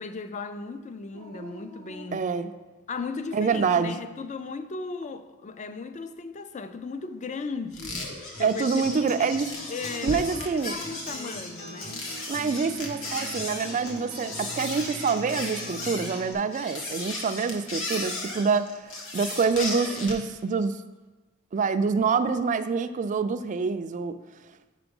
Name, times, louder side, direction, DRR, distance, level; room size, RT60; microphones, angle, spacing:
voice 1, 0.0-2.2 2.9-8.0 8.4-12.1, left 4 dB, 35° left, 0.4 m, -36 dB
Dog, 1.1-3.0 3.7-4.5 6.7-7.6, right 2 dB, 85° right, 0.8 m, -49 dB
voice 2, 2.1-2.5 3.3-4.0 8.4-9.5 10.0-10.8 12.3-20.8 21.5-24.2, right 5 dB, 35° right, 0.3 m, -26 dB
sound 1, 7.7-20.3, left 2 dB, 65° left, 1.3 m, -36 dB
Acoustic guitar, 8.3-16.3, equal, 90° left, 1.8 m, -41 dB
6.1 x 5.9 x 5.3 m
head